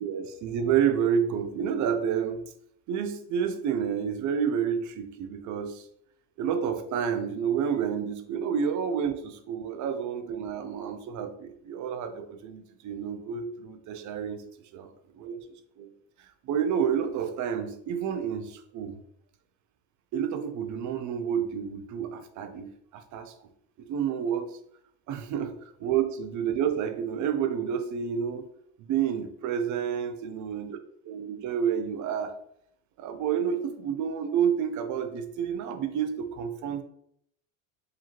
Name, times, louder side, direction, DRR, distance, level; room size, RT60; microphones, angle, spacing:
voice 1, 0.0-2.4 2.9-5.9 6.4-14.4 14.7-14.9 15.1-15.4 15.8-15.9 16.4-19.0 20.1-23.5 23.8-24.6 25.1-28.5 28.8-30.7 31.0-32.3 33.0-36.8, right 8 dB, 50° right, 8 dB, 0.6 m, -29 dB
4.9 x 2.7 x 3.0 m, 0.70 s
supercardioid pair, 105°, 38 cm